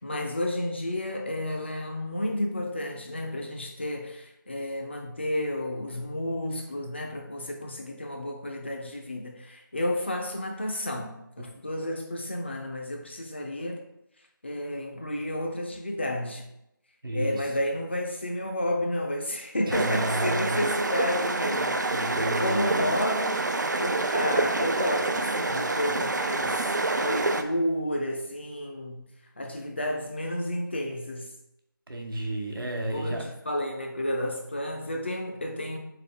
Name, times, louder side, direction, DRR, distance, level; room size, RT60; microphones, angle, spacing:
voice 1, 0.0-13.8 14.4-16.5 17.1-21.8 22.4-23.4 23.8-29.1 29.4-31.3 32.9-35.8, left 1 dB, 30° left, 3 dB, 0.5 m, -31 dB
voice 2, 17.0-17.5 19.7-20.7 21.9-22.8 31.9-33.3, right 1 dB, 70° right, 2 dB, 1.0 m, -31 dB
sound 1, 19.7-27.4, right 2 dB, 55° right, 0.4 m, -27 dB
3.8 x 3.3 x 3.7 m, 0.83 s
figure-of-eight pair, 165°, 12 cm